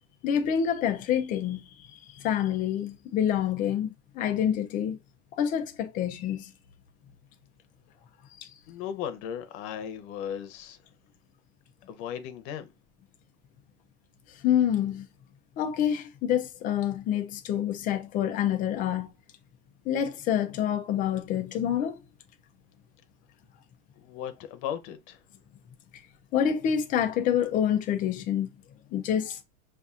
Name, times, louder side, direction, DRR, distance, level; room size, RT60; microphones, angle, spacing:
voice 1, 0.2-1.6 2.1-5.0 5.4-6.5 8.4-8.5 14.4-15.0 15.6-19.1 19.9-22.0 25.9-26.0 26.3-28.5 28.9-29.4, left 9 dB, 25° left, 0.3 m, -27 dB
voice 2, 8.7-10.8 11.9-12.7 24.0-25.2, left 9 dB, 55° left, 0.8 m, -36 dB
5.3 x 2.5 x 2.4 m
supercardioid pair, 155°, 40 cm